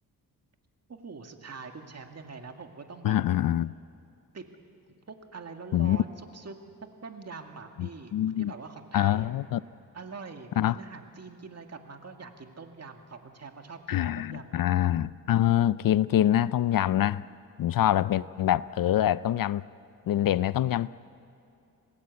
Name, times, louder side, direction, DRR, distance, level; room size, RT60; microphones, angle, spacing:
voice 1, 0.9-3.2 4.3-4.5 4.9-6.6 7.0-9.3 9.9-14.6 17.7-17.9, right 4 dB, 40° right, 2.1 m, -44 dB
voice 2, 3.0-3.7 5.7-6.0 7.8-8.5 8.9-9.6 10.6-10.8 13.9-17.2 17.6-19.6 20.1-20.9, left 12 dB, 60° left, 0.5 m, -25 dB
27.0 x 19.5 x 8.4 m
cardioid pair, 100°, 38 cm